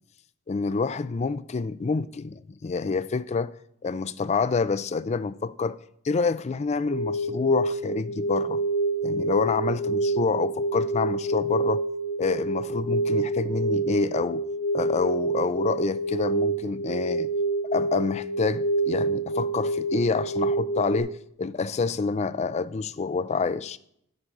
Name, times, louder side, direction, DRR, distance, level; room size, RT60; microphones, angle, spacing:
voice 1, 0.5-3.5 3.8-5.8 6.0-8.6 9.0-11.8 12.2-14.5 14.7-17.3 17.7-21.1 21.4-23.8, left 4 dB, 30° left, 0.4 m, -27 dB
sound 1, 6.9-21.0, right 2 dB, 75° left, 2.3 m, -27 dB
12.5 x 6.2 x 3.8 m
head